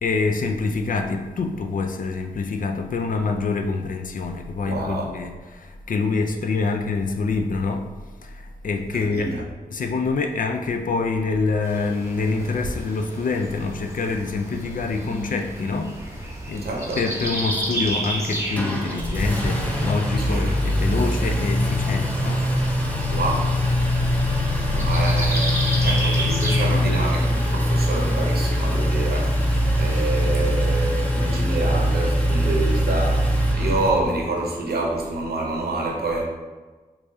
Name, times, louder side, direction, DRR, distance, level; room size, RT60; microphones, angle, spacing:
voice 1, 0.0-7.9 8.2-22.8, left 4 dB, 60° left, 5 dB, 0.4 m, -26 dB
voice 2, 4.6-5.1 8.9-9.4 16.6-17.0 20.2-20.5 23.1-23.5 24.3-36.2, right 2 dB, 80° right, -1 dB, 0.7 m, -27 dB
sound 1, 11.6-30.9, right 1 dB, 15° right, 0.9 m, -33 dB
Engine, 18.6-34.3, equal, 10° left, 0.6 m, -22 dB
4.6 x 2.3 x 2.7 m, 1.3 s
cardioid pair, 55°, 16 cm